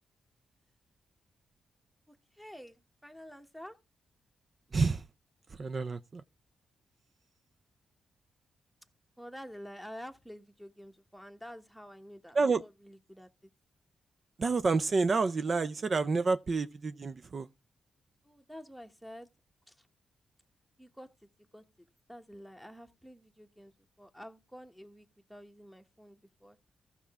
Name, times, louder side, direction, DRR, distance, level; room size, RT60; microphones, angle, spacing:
voice 1, 2.1-3.8 9.2-13.3 18.2-19.3 19.7-19.8 20.8-21.6 22.1-23.7 24.0-26.6, equal, ahead, 1.0 m, -49 dB
voice 2, 4.7-5.0 5.5-6.2 12.3-12.6 14.4-17.5, right 4 dB, 40° right, 0.4 m, -29 dB
15.0 x 5.6 x 3.5 m
cardioid pair, 115°, 0 cm